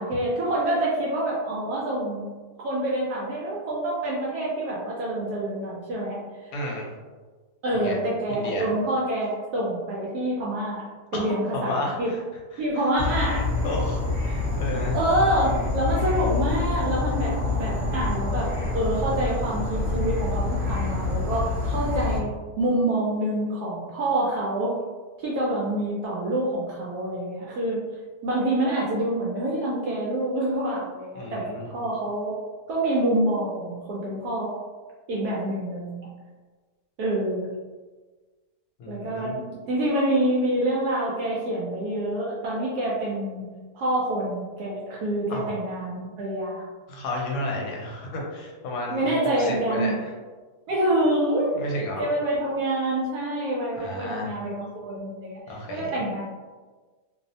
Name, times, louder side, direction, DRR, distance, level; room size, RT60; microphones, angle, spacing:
voice 1, 0.0-2.3 2.6-6.5 7.6-10.8 11.1-12.1 12.6-13.5 14.9-22.3 22.6-24.7 25.2-27.8 28.2-32.4 32.7-34.6 35.1-36.1 37.0-37.5 38.9-43.4 43.7-46.6 47.6-47.7 48.9-50.0 50.7-51.5 52.0-55.4 55.7-56.2, right 1 dB, 75° right, -5 dB, 1.1 m, -26 dB
voice 2, 6.5-6.9 7.7-8.0 8.3-8.7 11.1-11.3 11.5-12.2 12.5-12.6 13.6-14.0 14.3-15.0 31.1-31.7 38.8-39.4 45.3-45.5 46.9-49.1 49.4-50.1 51.5-52.0 53.8-54.4 55.5-55.9, left 1 dB, 75° left, -2 dB, 1.2 m, -32 dB
Insect / Frog, 13.0-22.2, left 3 dB, 40° right, 0.8 m, -27 dB
2.9 x 2.0 x 2.6 m, 1.3 s
omnidirectional pair, 1.7 m